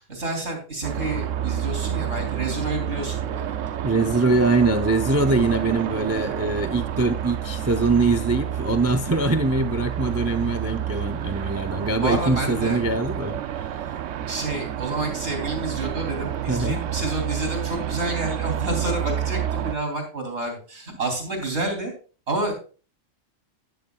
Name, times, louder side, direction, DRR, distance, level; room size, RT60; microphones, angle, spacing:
voice 1, 0.1-3.6 11.8-12.8 14.3-21.9 22.3-22.6, right 2 dB, 60° right, 3.5 m, -29 dB
sound 1, 0.8-19.8, right 10 dB, 75° right, 1.0 m, -29 dB
voice 2, 3.8-13.4 16.5-16.8, right 3 dB, 20° right, 0.4 m, -23 dB
13.0 x 10.5 x 2.3 m
omnidirectional pair, 1.3 m